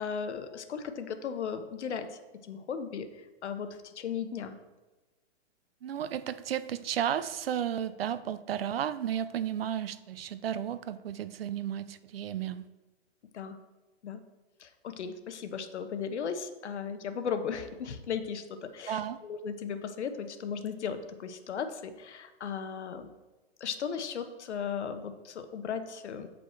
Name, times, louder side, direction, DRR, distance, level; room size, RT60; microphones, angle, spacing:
voice 1, 0.0-4.5 13.3-13.6 14.0-14.2 14.6-23.1 23.6-26.3, left 6 dB, 80° left, 8 dB, 1.0 m, -36 dB
voice 2, 5.8-12.7 18.9-19.2, right 10 dB, 60° right, 15 dB, 0.5 m, -33 dB
8.3 x 5.3 x 4.4 m, 1.1 s
hypercardioid pair, 175°, 34 cm